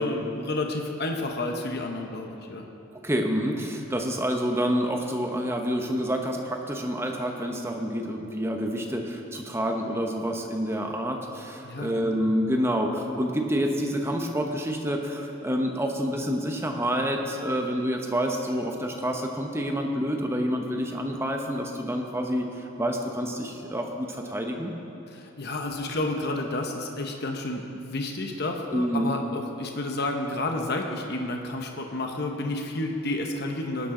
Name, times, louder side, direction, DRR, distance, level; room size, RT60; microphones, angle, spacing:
voice 1, 0.0-2.6 11.6-12.2 25.1-33.9, left 2 dB, 50° left, 3 dB, 1.0 m, -30 dB
voice 2, 3.0-24.7 28.7-29.1, equal, 10° right, 2 dB, 1.0 m, -28 dB
18.5 x 11.5 x 3.9 m, 2.7 s
head